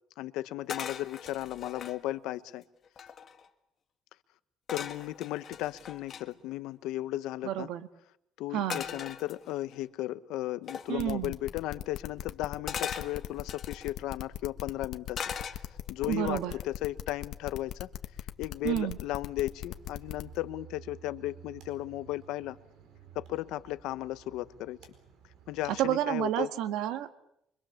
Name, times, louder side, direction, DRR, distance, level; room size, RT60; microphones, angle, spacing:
voice 1, 0.2-2.6 4.7-7.7 8.4-15.2 15.9-17.9 18.4-22.6 23.1-24.8 25.5-26.5, left 15 dB, 85° left, 13 dB, 1.0 m, -35 dB
sound 1, 0.7-2.0 2.6-2.7 2.9-3.5 4.7-6.3 8.7-9.8 10.7-11.0 12.7-13.9 15.1-16.0 16.4-16.8, left 7 dB, 40° left, 1.6 m, -39 dB
voice 2, 7.4-7.9 8.5-8.8 10.9-11.3 16.1-16.5 18.6-19.0 25.8-27.2, right 12 dB, 85° right, 10 dB, 1.5 m, -30 dB
sound 2, 11.0-20.4, left 12 dB, 65° left, 1.5 m, -39 dB
sound 3, 18.5-25.9, right 9 dB, 65° right, 4.6 m, -54 dB
25.5 x 25.0 x 7.2 m, 0.77 s
cardioid pair, 150°, 0 cm